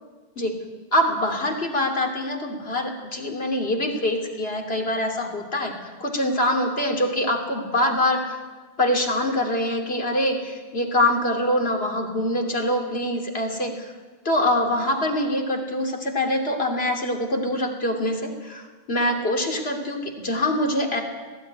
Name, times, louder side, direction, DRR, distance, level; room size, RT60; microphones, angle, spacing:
voice 1, 0.9-8.4 8.8-13.9 14.2-21.0, left 1 dB, 70° left, 1 dB, 3.1 m, -24 dB
18.5 x 15.5 x 9.9 m, 1.4 s
omnidirectional pair, 1.1 m